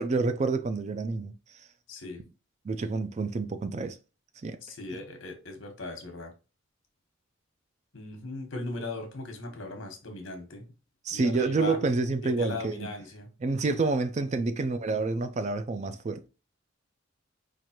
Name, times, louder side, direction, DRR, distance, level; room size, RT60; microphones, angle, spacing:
voice 1, 0.0-1.3 2.6-4.0 4.4-4.6 11.0-12.9 13.4-16.2, right 3 dB, 35° right, 0.3 m, -28 dB
voice 2, 1.9-2.2 4.6-6.3 7.9-10.6 11.1-11.8 12.2-13.3 14.4-14.6, left 2 dB, 70° left, 1.1 m, -38 dB
4.6 x 2.5 x 2.8 m
head